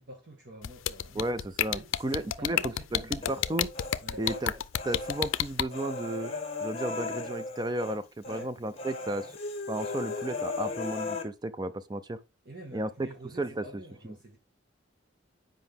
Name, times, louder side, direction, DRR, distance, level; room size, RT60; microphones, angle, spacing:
voice 1, 0.0-1.3 1.7-3.4 4.0-4.3 8.2-8.5 12.4-14.4, equal, 55° right, 1.6 m, -47 dB
sound 1, 0.6-5.6, left 11 dB, 90° left, 0.5 m, -28 dB
voice 2, 1.1-3.7 4.2-4.6 4.8-6.3 6.6-9.3 9.7-12.2 12.7-13.1 13.4-14.2, right 1 dB, 20° right, 0.5 m, -34 dB
Human voice, 3.2-4.4 4.7-8.0 8.2-8.5 8.8-11.2, left 3 dB, 30° left, 1.2 m, -36 dB
8.0 x 5.0 x 3.5 m
head